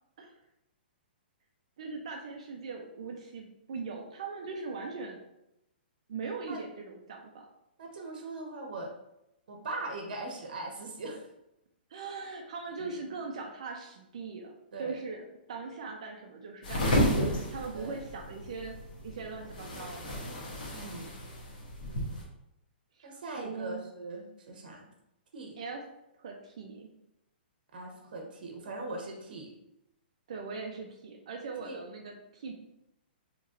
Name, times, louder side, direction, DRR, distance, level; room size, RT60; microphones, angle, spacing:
voice 1, 1.8-5.2 6.1-7.5 11.9-14.5 14.8-18.7 19.0-20.2 23.0-23.8 25.6-25.8 26.2-26.9 30.3-32.5, right 4 dB, 35° right, 2 dB, 0.4 m, -40 dB
voice 2, 7.8-8.9 9.5-11.3 12.8-12.9 14.7-15.0 17.7-18.0 20.7-21.1 23.0-24.9 25.3-25.6 27.7-29.5 31.6-31.8, right 2 dB, 50° right, 2 dB, 0.8 m, -40 dB
sound 1, 16.6-22.2, equal, 50° left, 1.0 m, -32 dB
4.1 x 2.9 x 2.5 m, 0.85 s
hypercardioid pair, 180°, 6 cm